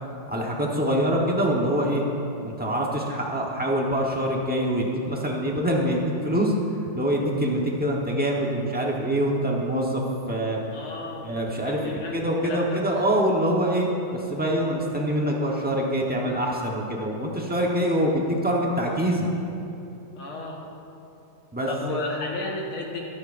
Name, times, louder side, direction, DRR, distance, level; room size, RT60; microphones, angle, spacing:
voice 1, 0.3-2.0 2.4-6.5 6.8-10.0 10.3-10.6 11.2-13.9 14.1-19.3 21.5-22.0, right 1 dB, 10° right, -2 dB, 0.5 m, -25 dB
voice 2, 10.7-11.3 11.6-13.0 20.2-20.6 21.7-23.0, left 2 dB, 80° left, -1 dB, 2.3 m, -33 dB
21.5 x 8.7 x 2.6 m, 2.8 s
omnidirectional pair, 2.3 m